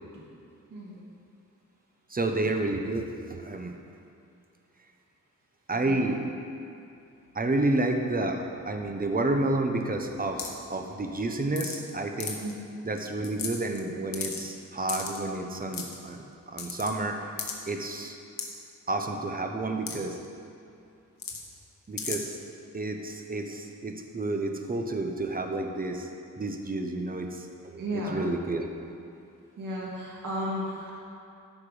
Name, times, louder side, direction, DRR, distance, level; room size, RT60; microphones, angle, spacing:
voice 1, 0.7-1.0 5.7-6.1 12.4-12.5 27.8-28.2 29.6-30.9, equal, 70° right, -5 dB, 2.1 m, -34 dB
voice 2, 2.1-3.7 5.7-6.2 7.3-12.4 12.8-17.2 17.7-18.2 18.9-20.2 21.9-22.4 22.7-26.1 26.4-28.7, right 2 dB, 25° right, 4 dB, 1.0 m, -30 dB
sound 1, 10.4-10.6 11.6-11.9 12.2-12.5 13.0-13.1 13.2-13.8 14.1-14.4 14.9-15.2 15.7-16.0 16.6-16.9 17.4-17.5 18.4-18.5 19.9-20.0 20.2-20.3 21.2-21.4 22.0-22.2, left 6 dB, 85° left, 1.3 m, -34 dB
13.5 x 6.0 x 5.1 m, 2.6 s
wide cardioid pair, 100°, 33 cm